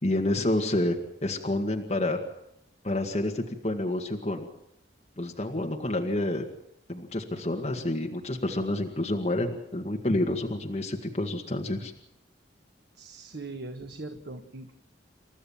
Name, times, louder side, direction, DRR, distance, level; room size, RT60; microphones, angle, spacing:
voice 1, 0.0-1.0 1.2-2.2 2.8-4.5 5.2-6.5 6.9-11.9, left 1 dB, 35° left, 1 dB, 1.9 m, -28 dB
voice 2, 12.9-14.7, right 2 dB, 65° right, 5 dB, 1.6 m, -40 dB
29.5 x 13.5 x 7.4 m, 0.83 s
head